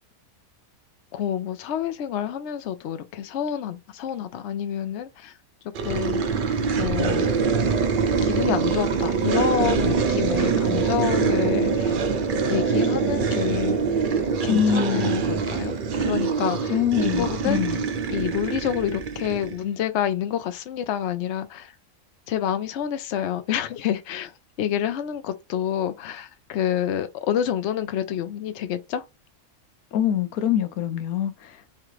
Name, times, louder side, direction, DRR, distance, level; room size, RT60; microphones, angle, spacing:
voice 1, 1.1-5.3 5.6-6.2 6.8-7.3 8.2-12.0 12.5-13.8 14.4-17.6 18.1-21.7 22.3-24.3 24.6-29.0, left 9 dB, 60° left, 0.9 m, -28 dB
sound 1, 5.8-19.6, right 5 dB, 85° right, 0.4 m, -24 dB
voice 2, 14.5-15.1 16.7-17.8 29.9-31.7, left 9 dB, 80° left, 1.1 m, -24 dB
3.6 x 3.3 x 3.1 m
omnidirectional pair, 1.5 m